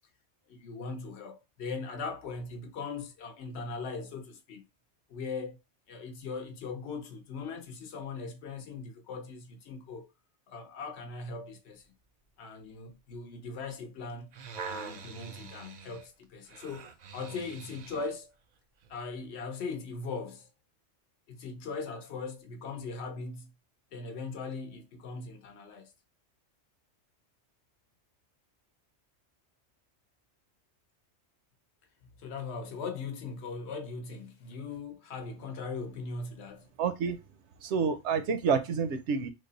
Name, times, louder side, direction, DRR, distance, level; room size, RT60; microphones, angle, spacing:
voice 1, 0.5-4.7 5.1-5.6 5.9-10.1 10.5-11.8 12.4-14.3 14.7-18.3 18.9-20.5 21.3-23.5 23.9-25.9 32.2-36.7, left 4 dB, 70° left, 0.9 m, -39 dB
sound 1, 14.1-18.2 18.8-19.0, right 5 dB, 60° right, 0.4 m, -44 dB
voice 2, 36.8-37.2 37.6-39.3, right 6 dB, 80° right, 0.9 m, -28 dB
3.3 x 2.0 x 3.8 m
omnidirectional pair, 1.2 m